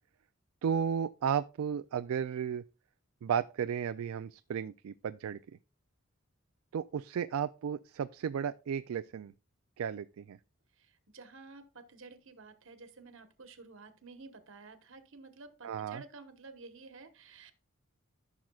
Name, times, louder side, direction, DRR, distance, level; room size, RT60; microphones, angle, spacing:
voice 1, 0.6-2.6 3.2-5.4 6.7-9.3 9.8-10.4 15.6-16.0, right 7 dB, 80° right, 0.3 m, -34 dB
voice 2, 10.8-17.5, right 3 dB, 65° right, 1.1 m, -52 dB
14.5 x 6.2 x 2.3 m
head